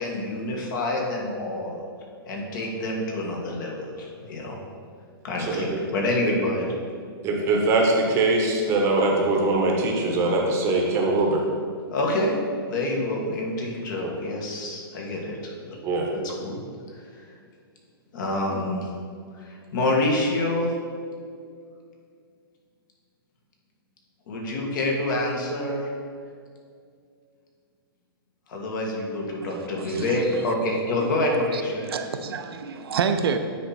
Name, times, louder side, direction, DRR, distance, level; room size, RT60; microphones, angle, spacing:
voice 1, 0.0-1.8 2.3-4.6 5.2-6.7 11.9-12.4 12.7-15.8 16.1-16.6 17.2-17.3 18.1-18.9 19.4-20.7 24.3-25.9 28.5-31.9, left 1 dB, 50° left, -1 dB, 1.7 m, -27 dB
voice 2, 5.4-5.8 7.2-11.4 14.0-14.1 15.8-16.1, right 2 dB, 20° right, 0 dB, 1.0 m, -22 dB
voice 3, 29.4-30.4 31.0-33.4, right 6 dB, 75° right, 7 dB, 0.6 m, -29 dB
9.4 x 4.3 x 4.1 m, 2.2 s
hypercardioid pair, 155°, 13 cm